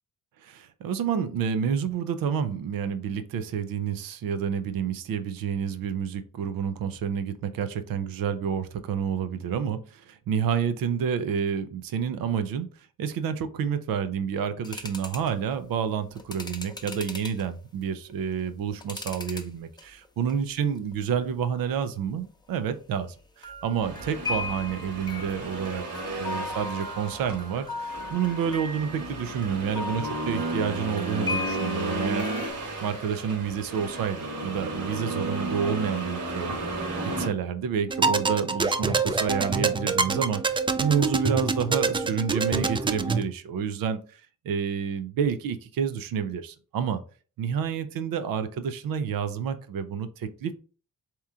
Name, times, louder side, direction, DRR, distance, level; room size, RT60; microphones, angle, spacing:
voice 1, 0.4-12.7 13.0-25.8 26.2-32.3 32.8-36.5 37.0-47.0 47.4-50.5, right 7 dB, 85° right, 11 dB, 0.6 m, -29 dB
sound 1, 14.6-15.3 16.1-17.5 18.1-19.5 19.8-20.3 20.8-20.9 23.4-32.5, left 3 dB, 15° left, 0.7 m, -37 dB
Accelerating revving vroom, 23.8-37.3, right 2 dB, 65° right, 1.4 m, -33 dB
sound 2, 37.9-43.2, right 4 dB, 15° right, 0.3 m, -26 dB
3.6 x 2.9 x 3.5 m, 0.38 s
cardioid pair, 65°, 34 cm